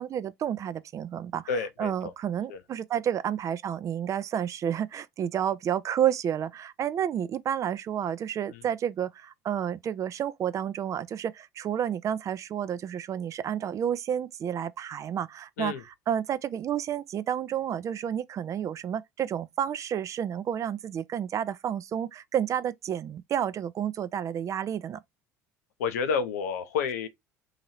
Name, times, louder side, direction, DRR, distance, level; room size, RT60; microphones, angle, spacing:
voice 1, 0.0-1.5 1.8-15.7 16.1-25.0, right 9 dB, 35° right, 0.4 m, -30 dB
voice 2, 1.5-2.1 2.5-2.6 8.5-8.6 15.6-15.8 25.8-27.1, left 6 dB, 70° left, 0.6 m, -30 dB
2.9 x 2.7 x 4.1 m
figure-of-eight pair, 65°, 9 cm